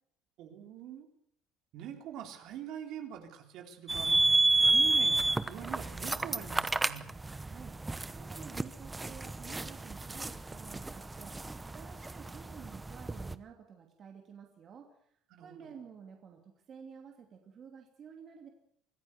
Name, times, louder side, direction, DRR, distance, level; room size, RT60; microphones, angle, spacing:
voice 1, 0.4-1.1 1.7-4.2 4.6-7.1 15.3-15.8, right 9 dB, 65° right, 4 dB, 4.0 m, -44 dB
sound 1, 3.9-13.4, right 2 dB, 10° right, 0.9 m, -30 dB
voice 2, 7.4-7.8 8.2-11.4 11.7-14.9 15.4-18.5, right 7 dB, 40° right, 3 dB, 2.7 m, -51 dB
24.5 x 14.5 x 8.1 m, 0.69 s
cardioid pair, 135°, 0 cm